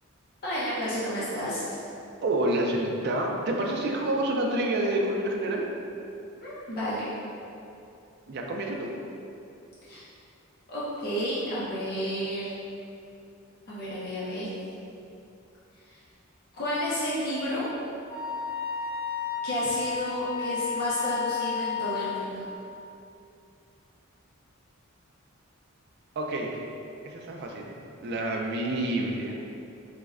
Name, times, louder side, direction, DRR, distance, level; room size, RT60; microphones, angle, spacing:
voice 1, 0.4-1.8 6.4-7.0 9.8-10.0 10.7-12.5 13.7-14.5 16.5-17.7 19.4-22.5, equal, 50° left, -9 dB, 0.6 m, -31 dB
voice 2, 2.2-5.7 8.3-8.9 26.2-26.6 27.0-27.7 28.0-29.3, right 1 dB, 50° right, 0 dB, 0.4 m, -28 dB
Wind instrument woodwind instrument, 18.1-22.3, left 5 dB, 85° left, 1.4 m, -32 dB
4.8 x 2.1 x 2.3 m, 2.7 s
head